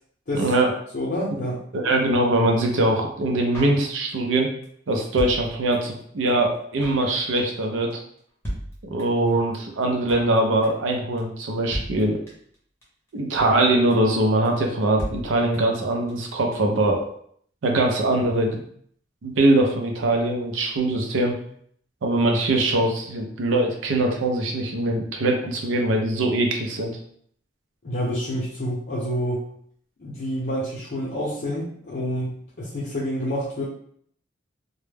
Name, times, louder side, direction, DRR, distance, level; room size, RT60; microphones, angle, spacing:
voice 1, 0.3-0.7 1.7-4.5 4.9-8.0 8.8-12.2 13.1-17.1 17.6-18.6 19.2-21.4 22.0-26.9, right 2 dB, 90° right, 2 dB, 0.5 m, -22 dB
voice 2, 0.9-1.6 27.8-29.4 30.0-33.6, equal, 55° left, -8 dB, 0.6 m, -28 dB
Drum kit, 3.5-4.4 4.6-4.7 4.9-6.0 6.3-6.4 6.5-7.1 7.4-7.6 7.9-8.0 8.2-8.3 8.4-9.3 9.5-9.6 9.8-10.4 10.6-10.9 11.2-11.3 11.5-11.6 11.7-12.6 12.8-12.9 13.1-13.6 13.9-14.2 14.4-14.5 14.7-14.8 15.0-15.8 16.1-16.2 16.4-16.5, equal, 15° left, 0.7 m, -34 dB
2.2 x 2.0 x 3.2 m, 0.63 s
head